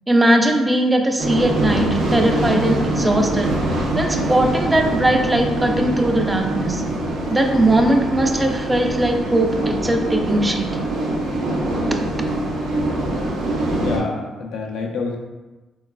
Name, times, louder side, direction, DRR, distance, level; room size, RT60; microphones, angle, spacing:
voice 1, 0.1-3.6 4.0-6.8 7.3-10.7, right 1 dB, 15° right, 3 dB, 0.4 m, -19 dB
sound 1, 1.2-14.0, right 1 dB, 80° right, 0.6 m, -23 dB
voice 2, 13.8-15.2, left 4 dB, 80° left, 1 dB, 0.5 m, -27 dB
3.7 x 2.3 x 2.3 m, 1.2 s
cardioid pair, 90°, 0 cm